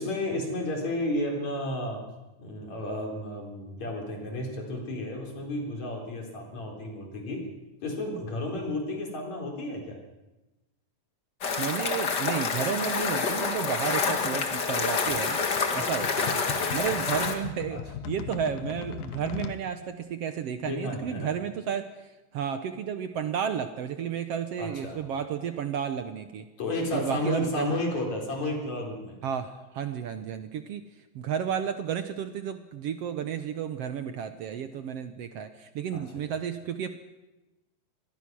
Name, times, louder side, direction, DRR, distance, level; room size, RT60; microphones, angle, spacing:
voice 1, 0.0-2.0 2.4-7.5 7.8-10.0 17.7-17.8 20.6-21.3 24.6-25.0 26.6-29.2 35.9-36.0, left 1 dB, 65° left, 1 dB, 5.4 m, -32 dB
sound 1, 11.4-17.3, left 5 dB, 40° left, 2.1 m, -28 dB
voice 2, 11.6-15.4 15.7-26.5 26.9-27.7 29.2-30.8 31.1-37.0, right 8 dB, 65° right, 9 dB, 1.7 m, -32 dB
sound 2, 14.0-19.6, left 9 dB, 85° left, 2.6 m, -39 dB
24.5 x 19.5 x 6.2 m, 1.1 s
omnidirectional pair, 3.4 m